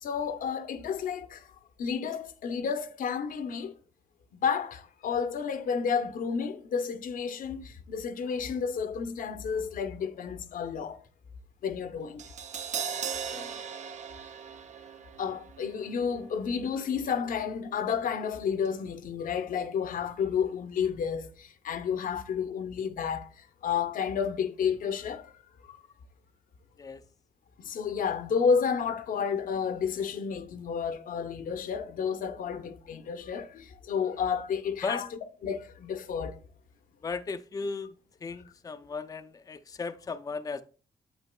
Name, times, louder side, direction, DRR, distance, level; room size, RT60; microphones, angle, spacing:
voice 1, 0.0-1.5 1.8-3.7 4.3-11.0 11.6-12.2 15.2-25.8 27.6-35.1 35.4-36.4, left 6 dB, 80° left, 0.7 m, -31 dB
Crash cymbal, 12.2-18.4 18.6-18.8, right 7 dB, 55° right, 0.6 m, -40 dB
voice 2, 13.2-13.6 26.8-27.0 34.8-35.1 37.0-38.0 38.2-40.6, left 4 dB, 25° left, 0.4 m, -36 dB
8.3 x 8.0 x 2.2 m
cardioid pair, 120°, 14 cm